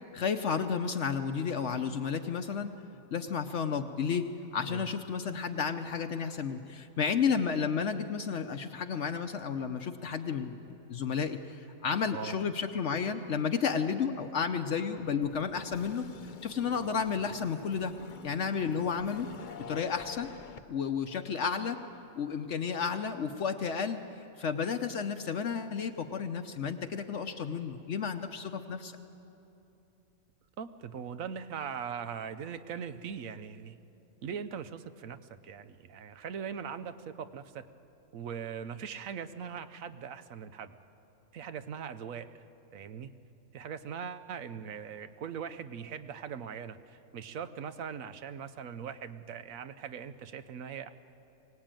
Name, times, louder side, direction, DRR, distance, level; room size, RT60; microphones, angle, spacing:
voice 1, 0.1-2.8 3.1-17.9 18.2-19.3 19.7-20.3 20.7-21.8 22.2-24.0 24.4-29.0, left 6 dB, 65° left, 6 dB, 1.0 m, -32 dB
sound 1, 15.0-20.6, left 6 dB, 45° left, 0.7 m, -47 dB
voice 2, 30.6-33.8 34.2-35.2 35.4-37.7 38.1-40.8 41.3-42.4 42.7-43.1 43.5-50.9, right 7 dB, 75° right, 12 dB, 1.2 m, -40 dB
24.0 x 18.0 x 9.0 m, 3.0 s
omnidirectional pair, 1.4 m